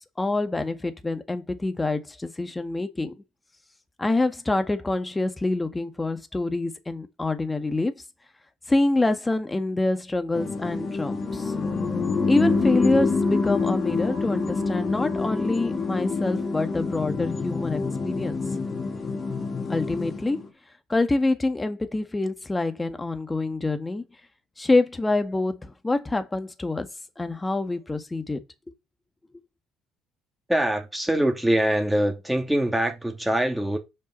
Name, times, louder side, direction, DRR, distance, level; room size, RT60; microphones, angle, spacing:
voice 1, 0.2-3.1 4.0-7.9 8.7-11.5 12.2-18.4 19.7-20.4 20.9-24.0 24.6-26.9 27.2-28.4, left 2 dB, 20° left, 1.8 m, -26 dB
sound 1, 10.3-20.5, left 4 dB, 40° left, 2.2 m, -27 dB
voice 2, 30.5-33.8, right 1 dB, 5° right, 2.6 m, -23 dB
7.4 x 5.3 x 5.4 m
hypercardioid pair, 55°, 0 cm